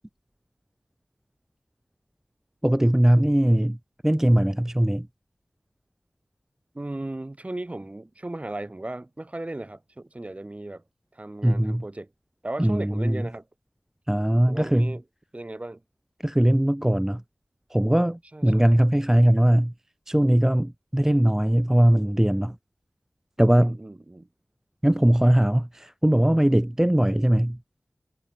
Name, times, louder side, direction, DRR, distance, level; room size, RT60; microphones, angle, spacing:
voice 1, 2.6-3.8 4.0-5.1 11.4-11.8 12.6-13.2 14.1-14.9 16.2-17.2 17.7-19.7 20.1-22.6 23.4-23.8 24.8-27.6, right 1 dB, 10° right, 0.3 m, -20 dB
voice 2, 6.7-10.8 11.1-12.1 12.4-13.5 14.5-15.0 15.3-15.8 18.3-18.8 23.5-24.3, right 2 dB, 30° right, 1.5 m, -36 dB
wide cardioid pair, 70°, 5 cm